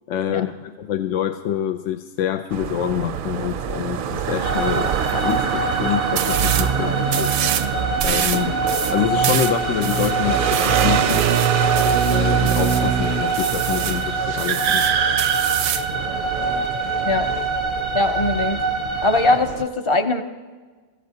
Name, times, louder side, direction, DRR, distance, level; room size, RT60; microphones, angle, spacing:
voice 1, 0.1-7.3 8.0-8.6 8.9-11.2 12.1-14.8, left 10 dB, 90° left, 7 dB, 0.9 m, -26 dB
sound 1, 2.5-19.6, right 8 dB, 60° right, 0.6 m, -24 dB
sound 2, 4.4-19.4, right 3 dB, 60° left, 2.1 m, -25 dB
sound 3, 6.2-6.7 7.1-7.7 8.0-12.9 13.3-14.0 14.4-15.9, right 10 dB, 90° right, 0.9 m, -27 dB
voice 2, 17.9-18.6 19.0-20.2, left 2 dB, 30° left, 7 dB, 0.6 m, -20 dB
24.5 x 14.5 x 2.8 m, 1.4 s
omnidirectional pair, 1.2 m